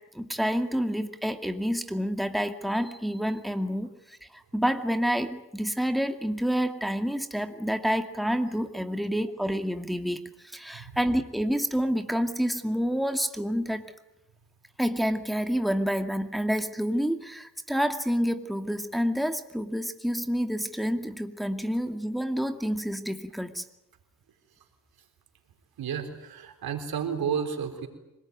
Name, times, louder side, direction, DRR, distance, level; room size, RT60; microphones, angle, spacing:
voice 1, 0.1-13.9 14.8-23.6, equal, ahead, 6 dB, 2.3 m, -28 dB
voice 2, 25.8-27.9, right 7 dB, 90° right, 6 dB, 3.7 m, -32 dB
25.5 x 19.0 x 9.4 m, 0.94 s
cardioid pair, 60°, 35 cm